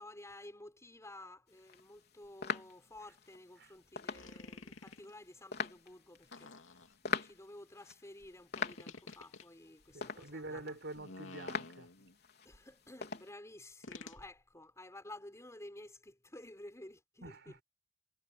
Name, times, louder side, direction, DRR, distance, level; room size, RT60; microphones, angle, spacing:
voice 1, 0.0-10.8 12.0-12.1 12.5-17.6, left 1 dB, 15° left, 5.3 m, -53 dB
sound 1, 1.5-13.3, left 5 dB, 55° left, 3.9 m, -44 dB
sound 2, 4.1-5.1 6.3-7.1 8.6-9.5 10.9-12.1 13.8-14.2, left 3 dB, 75° left, 2.7 m, -51 dB
voice 2, 9.9-11.9 17.2-17.5, right 2 dB, 60° right, 5.0 m, -46 dB
head